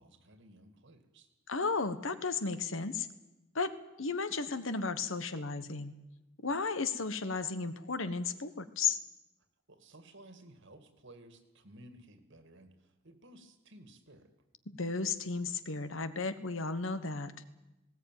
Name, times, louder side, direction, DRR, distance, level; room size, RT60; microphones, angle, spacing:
voice 1, 0.0-1.3 9.7-14.3, right 1 dB, 60° right, 9 dB, 2.3 m, -56 dB
voice 2, 1.5-3.1 3.5-5.9 6.4-9.0 14.7-17.3, left 4 dB, 65° left, 12 dB, 1.3 m, -34 dB
19.0 x 17.0 x 9.2 m, 1.0 s
head